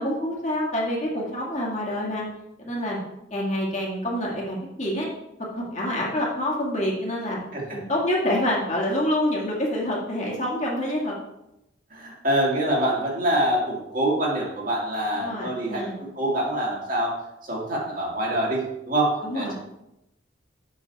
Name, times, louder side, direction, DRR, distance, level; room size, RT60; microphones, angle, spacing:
voice 1, 0.0-2.2 2.6-3.0 3.3-5.1 5.6-7.4 7.7-11.1 15.2-16.0 19.2-19.5, left 1 dB, 35° left, -4 dB, 2.0 m, -27 dB
voice 2, 11.9-15.8 16.2-17.2 17.4-19.5, right 1 dB, 45° right, -4 dB, 2.1 m, -25 dB
7.2 x 6.3 x 4.1 m, 0.87 s
head